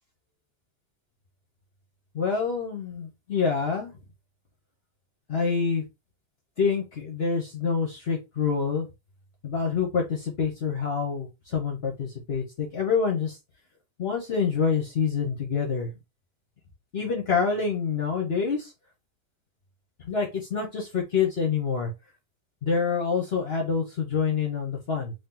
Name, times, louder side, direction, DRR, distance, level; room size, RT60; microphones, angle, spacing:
voice 1, 2.1-3.9 5.3-5.8 6.6-8.9 9.4-11.3 11.5-13.3 14.0-15.9 16.9-18.7 20.1-21.9 22.6-25.1, left 5 dB, 50° left, 0 dB, 1.0 m, -26 dB
3.1 x 2.9 x 3.7 m, 0.24 s
omnidirectional pair, 1.6 m